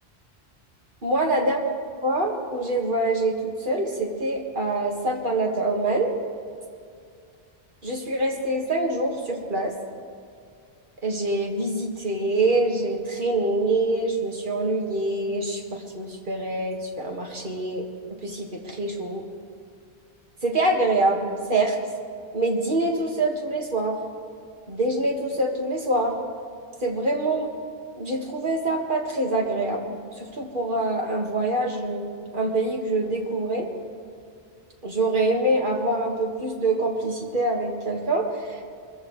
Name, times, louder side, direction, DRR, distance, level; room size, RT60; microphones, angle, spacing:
voice 1, 1.0-1.8 2.0-6.1 7.8-9.7 11.0-17.9 18.2-19.2 20.4-21.8 22.3-24.0 24.7-26.1 26.8-27.5 28.0-32.1 32.3-33.7 34.8-38.6, right 2 dB, 50° right, 0 dB, 2.0 m, -25 dB
23.0 x 15.0 x 3.2 m, 2.3 s
omnidirectional pair, 1.1 m